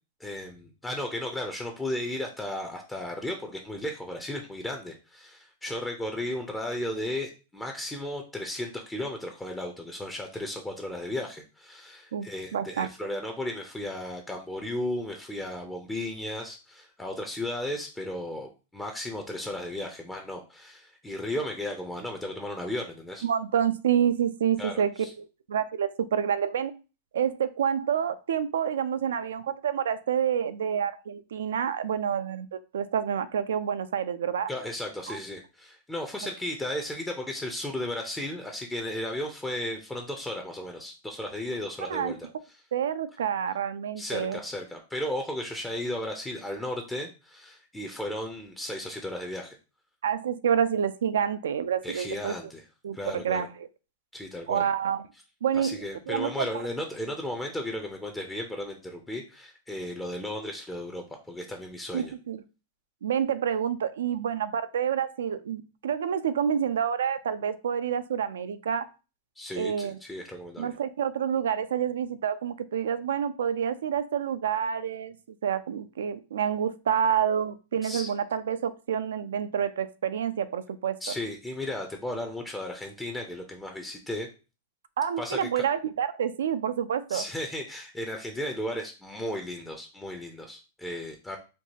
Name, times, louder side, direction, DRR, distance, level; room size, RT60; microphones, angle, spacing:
voice 1, 0.2-23.2 24.6-25.1 34.5-42.2 44.0-49.6 51.8-52.6 52.9-53.5 54.1-54.6 55.5-62.1 69.4-70.7 77.8-78.1 81.0-84.3 85.2-85.6 87.1-91.4, left 1 dB, 5° left, 2 dB, 0.5 m, -35 dB
voice 2, 12.5-12.9 23.2-26.7 27.1-32.5 32.7-34.5 35.1-35.2 41.8-42.1 42.7-44.4 50.0-52.3 52.8-53.7 54.5-55.0 55.4-55.8 56.1-56.5 61.9-62.4 63.0-68.9 69.6-70.0 70.6-81.1 85.0-87.2, right 8 dB, 90° right, 12 dB, 0.4 m, -28 dB
4.4 x 2.4 x 2.8 m, 0.32 s
supercardioid pair, 150°, 0 cm